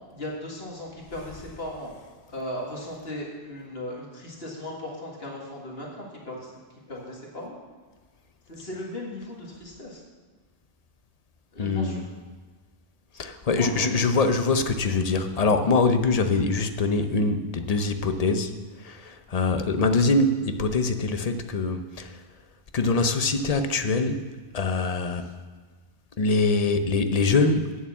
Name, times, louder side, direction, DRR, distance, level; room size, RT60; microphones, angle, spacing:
voice 1, 0.1-1.9 2.3-6.5 6.9-7.6 8.5-10.0 11.5-12.0 13.5-14.0, left 1 dB, 70° left, -2 dB, 2.2 m, -37 dB
voice 2, 11.6-12.0 13.2-18.5 18.8-22.2 22.7-25.3 26.2-27.8, left 3 dB, 45° left, 8 dB, 0.7 m, -24 dB
8.5 x 7.1 x 7.2 m, 1.4 s
omnidirectional pair, 1.1 m